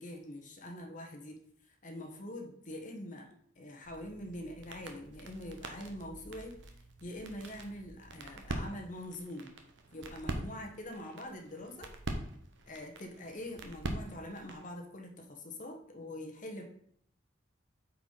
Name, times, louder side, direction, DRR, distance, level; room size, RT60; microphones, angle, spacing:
voice 1, 0.0-1.4 1.8-3.3 3.6-6.6 7.0-9.5 9.9-11.9 12.7-16.6, left 1 dB, 45° left, 2 dB, 1.2 m, -44 dB
sound 1, 3.8-14.7, right 1 dB, 70° right, 1.1 m, -44 dB
8.6 x 4.7 x 4.0 m, 0.64 s
head